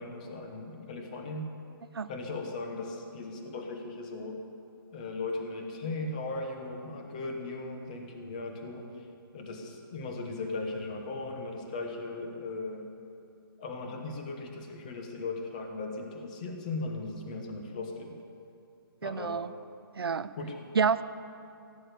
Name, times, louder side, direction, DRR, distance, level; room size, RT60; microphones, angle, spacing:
voice 1, 0.0-1.5 2.1-4.4 4.9-9.1 9.3-12.9 13.6-18.2 19.0-19.4 20.3-20.6, left 3 dB, 20° left, 3 dB, 1.0 m, -37 dB
voice 2, 19.0-19.5 20.0-20.3 20.7-21.0, right 6 dB, 75° right, 14 dB, 0.7 m, -28 dB
16.0 x 8.6 x 8.2 m, 2.6 s
hypercardioid pair, 175°, 13 cm